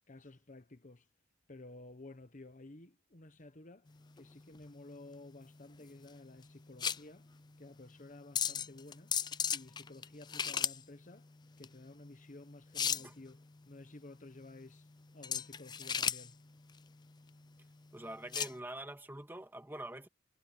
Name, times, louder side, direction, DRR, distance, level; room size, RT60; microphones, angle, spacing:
voice 1, 0.1-1.1 1.5-3.9 4.2-7.3 7.6-9.2 9.5-11.3 11.6-14.9 15.1-16.4, left 2 dB, 40° left, 1.2 m, -53 dB
sound 1, 3.9-18.6, left 8 dB, 20° left, 0.4 m, -38 dB
voice 2, 17.9-20.1, right 1 dB, 10° right, 1.8 m, -45 dB
head